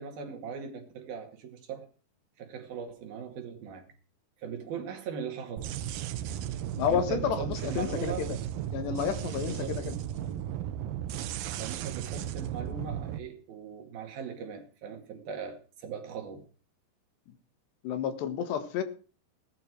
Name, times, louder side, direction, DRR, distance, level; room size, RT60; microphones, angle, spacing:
voice 1, 0.0-1.9 2.4-3.9 4.4-5.7 6.8-8.3 9.5-9.8 11.6-16.5, right 6 dB, 60° right, 3.7 m, -39 dB
sound 1, 5.6-13.2, right 11 dB, 80° right, 2.0 m, -35 dB
voice 2, 6.8-8.4 8.7-10.0 10.3-10.4 17.8-18.8, left 8 dB, 70° left, 3.6 m, -31 dB
18.0 x 11.5 x 4.7 m
omnidirectional pair, 5.3 m